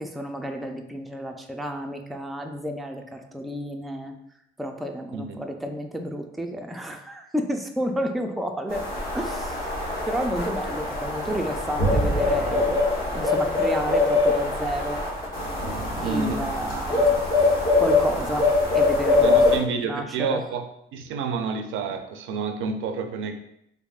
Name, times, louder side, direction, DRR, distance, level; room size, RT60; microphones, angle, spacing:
voice 1, 0.0-4.1 4.6-8.9 9.1-12.9 13.1-15.0 16.0-20.4, equal, ahead, 4 dB, 0.3 m, -31 dB
sound 1, 8.7-19.6, left 3 dB, 45° left, 1.3 m, -23 dB
sound 2, 11.2-17.7, right 2 dB, 70° left, 1.5 m, -32 dB
voice 2, 16.0-16.5 19.2-20.7 20.9-23.3, right 5 dB, 80° right, 6 dB, 0.5 m, -29 dB
3.4 x 3.4 x 2.4 m, 0.75 s
cardioid pair, 90°, 20 cm